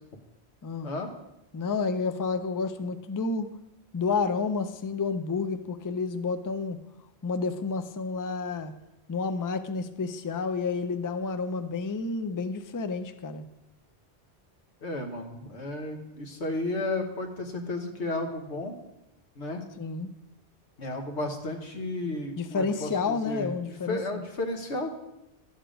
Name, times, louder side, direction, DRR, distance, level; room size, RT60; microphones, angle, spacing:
voice 1, 1.5-3.5 3.9-6.8 7.2-8.7 9.1-13.4 19.8-20.1 22.4-24.2, left 4 dB, 30° left, 9 dB, 0.3 m, -30 dB
voice 2, 14.8-18.8 19.4-19.6 20.8-24.9, left 2 dB, 80° left, 4 dB, 1.5 m, -33 dB
12.0 x 7.0 x 5.1 m, 0.91 s
omnidirectional pair, 1.1 m